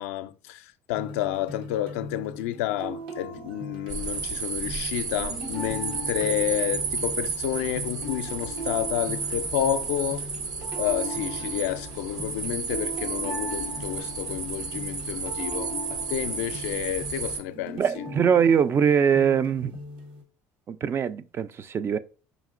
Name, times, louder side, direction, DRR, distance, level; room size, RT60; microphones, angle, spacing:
voice 1, 0.0-10.2 10.8-17.8, left 12 dB, 85° left, 0.4 m, -30 dB
sound 1, 0.9-20.2, equal, 75° right, 1.4 m, -39 dB
sound 2, 3.9-17.4, right 5 dB, 60° right, 0.9 m, -32 dB
voice 2, 17.8-19.7 20.7-22.0, right 7 dB, 35° right, 0.4 m, -22 dB
5.0 x 2.8 x 2.4 m
supercardioid pair, 100°, 7 cm